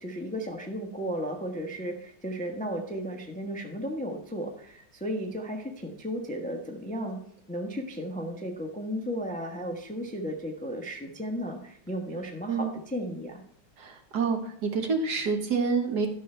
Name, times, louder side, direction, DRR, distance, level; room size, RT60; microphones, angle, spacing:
voice 1, 0.0-7.2 7.5-13.4, equal, 5° left, 1 dB, 0.6 m, -34 dB
voice 2, 13.8-16.1, right 5 dB, 55° right, 5 dB, 1.6 m, -27 dB
12.0 x 6.0 x 4.5 m, 0.64 s
omnidirectional pair, 2.3 m